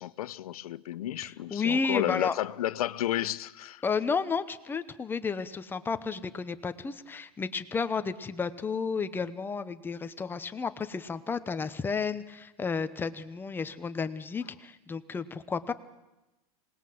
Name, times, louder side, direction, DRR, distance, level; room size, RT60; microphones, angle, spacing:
voice 1, 0.0-3.8, left 13 dB, 85° left, 0.8 m, -32 dB
voice 2, 1.2-2.3 3.8-15.7, left 5 dB, 10° left, 0.9 m, -32 dB
26.0 x 20.0 x 7.8 m
supercardioid pair, 150°, 19 cm